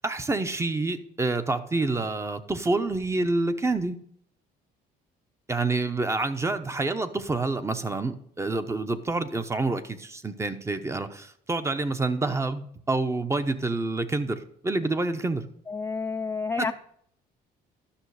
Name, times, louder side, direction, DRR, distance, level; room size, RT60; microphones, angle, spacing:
voice 1, 0.0-4.0 5.5-15.4 16.6-16.7, right 3 dB, 15° right, 10 dB, 0.8 m, -28 dB
voice 2, 15.7-16.7, left 4 dB, 15° left, 7 dB, 0.3 m, -29 dB
11.5 x 6.2 x 4.8 m, 0.65 s
cardioid pair, 110°, 17 cm